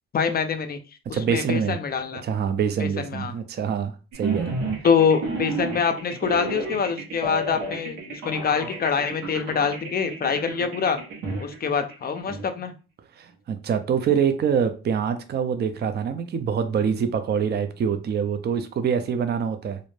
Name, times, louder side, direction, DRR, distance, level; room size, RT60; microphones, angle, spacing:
voice 1, 0.1-0.8 1.1-2.2 2.8-3.3 4.8-11.0 11.4-12.8, left 6 dB, 30° left, 0.4 m, -25 dB
voice 2, 1.1-1.8 2.2-4.6 13.2-19.8, right 7 dB, 35° right, 0.4 m, -25 dB
sound 1, 4.1-12.5, right 3 dB, 80° right, 1.1 m, -32 dB
2.5 x 2.1 x 3.1 m
cardioid pair, 90°, 30 cm